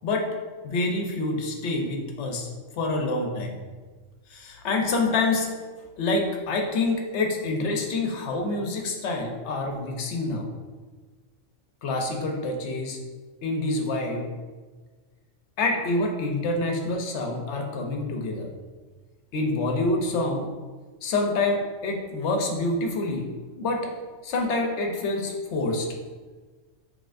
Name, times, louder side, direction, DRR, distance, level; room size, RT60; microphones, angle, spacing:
voice 1, 0.6-2.5 2.8-3.6 4.3-5.5 6.0-10.5 11.8-13.0 13.4-14.3 15.6-18.5 19.3-20.5 21.0-23.3 23.6-23.9 24.2-25.9, left 2 dB, 70° left, 2 dB, 1.0 m, -27 dB
6.4 x 3.2 x 2.5 m, 1.4 s
omnidirectional pair, 1.2 m